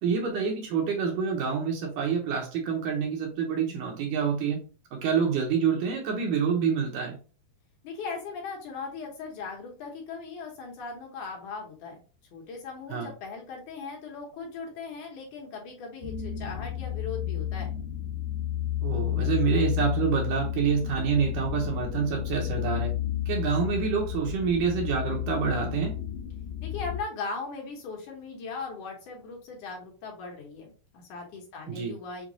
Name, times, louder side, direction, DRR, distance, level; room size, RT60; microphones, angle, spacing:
voice 1, 0.0-4.6 4.9-7.2 12.9-13.1 18.8-22.9 23.3-26.0 31.7-31.9, right 6 dB, 75° right, 1 dB, 2.1 m, -27 dB
voice 2, 7.8-12.0 12.3-17.7 26.6-32.3, left 4 dB, 70° left, 0 dB, 2.1 m, -38 dB
sound 1, 16.0-27.0, left 12 dB, 85° left, 1.7 m, -31 dB
6.0 x 2.2 x 2.7 m, 0.35 s
omnidirectional pair, 4.0 m